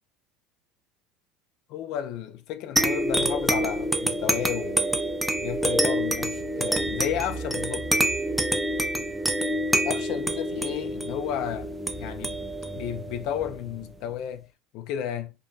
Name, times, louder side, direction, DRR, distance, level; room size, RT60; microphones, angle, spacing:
voice 1, 1.7-5.0 5.4-7.9 9.8-12.5 12.7-14.5 14.7-15.3, left 10 dB, 65° left, 0.4 m, -33 dB
sound 1, 2.8-13.8, right 1 dB, 5° right, 0.4 m, -27 dB
2.5 x 2.5 x 2.2 m
supercardioid pair, 120°, 0 cm